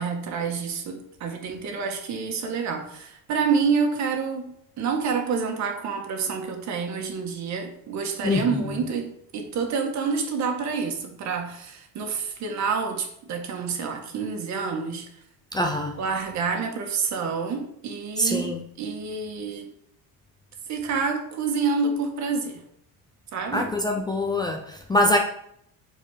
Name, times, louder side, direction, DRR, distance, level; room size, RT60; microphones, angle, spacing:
voice 1, 0.0-15.1 16.0-19.7 20.7-22.6 23.3-23.7, right 5 dB, 45° right, 3 dB, 1.8 m, -28 dB
voice 2, 15.5-15.9 18.2-18.6 23.5-25.2, left 1 dB, 10° left, 2 dB, 0.5 m, -23 dB
8.8 x 4.7 x 5.0 m, 0.71 s
cardioid pair, 145°, 38 cm